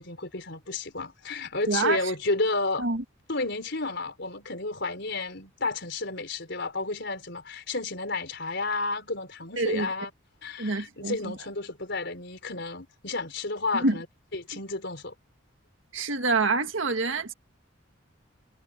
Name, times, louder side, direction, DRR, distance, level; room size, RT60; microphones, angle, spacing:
voice 1, 0.0-2.9 3.3-10.1 10.4-14.0 14.3-15.1, left 3 dB, 60° left, 4.7 m, -31 dB
voice 2, 1.7-2.0 2.8-3.0 9.6-9.9 10.6-11.3 13.7-14.0 15.9-17.3, right 3 dB, 70° right, 1.8 m, -26 dB
head